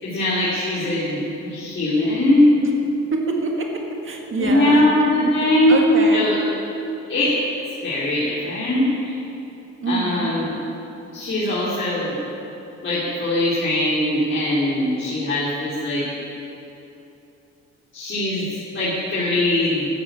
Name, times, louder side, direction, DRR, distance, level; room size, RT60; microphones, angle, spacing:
voice 1, 0.0-2.6 4.4-6.4 7.1-7.4 7.8-9.2 9.9-10.5 11.1-12.2 12.8-16.1 17.9-19.9, left 1 dB, 40° left, -9 dB, 3.9 m, -20 dB
voice 2, 3.1-4.8 5.2-5.3 5.7-6.2 9.8-10.3, right 3 dB, 40° right, 1 dB, 1.9 m, -25 dB
13.0 x 8.9 x 8.4 m, 2.9 s
cardioid pair, 90°, 30 cm